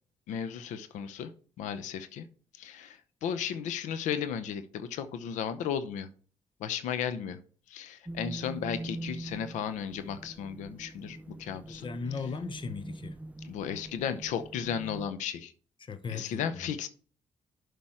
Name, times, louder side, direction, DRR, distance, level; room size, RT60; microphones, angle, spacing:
voice 1, 0.3-1.3 1.6-2.3 2.5-6.1 6.6-7.4 7.7-11.9 13.4-15.5 16.1-16.9, left 8 dB, 90° left, 0.8 m, -35 dB
sound 1, 8.0-15.1, right 2 dB, 10° right, 0.7 m, -43 dB
voice 2, 11.7-13.2 15.9-16.7, left 5 dB, 45° left, 0.9 m, -37 dB
7.5 x 5.2 x 4.5 m
cardioid pair, 75°, 12 cm